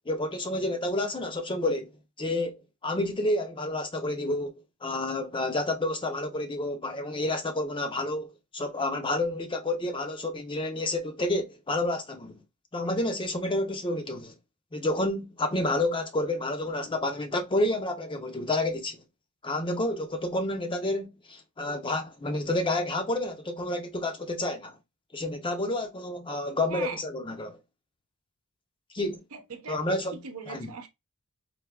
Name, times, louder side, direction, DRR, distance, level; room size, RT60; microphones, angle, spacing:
voice 1, 0.1-1.9 2.2-4.5 4.8-12.4 12.7-14.3 14.7-19.0 19.4-24.8 25.1-27.6 28.9-29.2 29.7-30.2 30.5-30.7, left 2 dB, 25° left, 0.6 m, -29 dB
voice 2, 26.7-27.0 29.3-30.9, right 5 dB, 80° right, 0.8 m, -39 dB
3.4 x 2.7 x 2.3 m
head